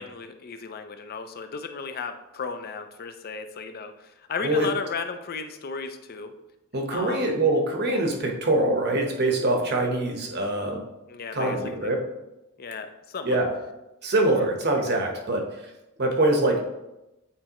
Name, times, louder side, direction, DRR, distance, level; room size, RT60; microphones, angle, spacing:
voice 1, 0.0-6.3 6.9-7.2 11.1-11.6 11.8-11.9 12.6-13.4, left 5 dB, 45° left, 8 dB, 0.5 m, -35 dB
voice 2, 6.7-10.8 11.3-12.0 13.2-13.5 14.0-15.7 16.0-16.7, right 2 dB, 50° right, 2 dB, 1.1 m, -24 dB
8.5 x 4.3 x 3.0 m, 0.95 s
head